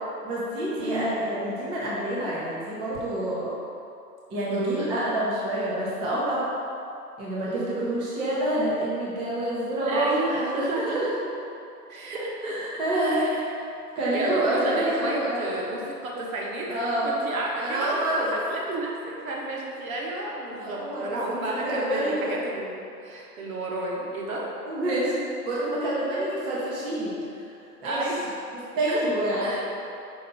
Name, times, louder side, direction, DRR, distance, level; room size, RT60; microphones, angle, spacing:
voice 1, 0.2-3.5 4.3-6.5 7.2-11.1 12.4-13.2 14.0-15.4 16.7-17.2 17.6-18.4 20.5-22.4 24.7-25.1 25.5-27.4 27.8-28.1 28.5-29.5, right 1 dB, 10° right, -7 dB, 0.6 m, -27 dB
voice 2, 0.8-1.2 4.5-4.9 7.5-8.0 9.9-11.0 11.9-13.4 14.1-24.5 27.8-28.4 28.9-29.0 29.4-29.7, right 2 dB, 60° right, -2 dB, 1.4 m, -32 dB
5.4 x 3.4 x 5.4 m, 2.6 s
hypercardioid pair, 140°, 47 cm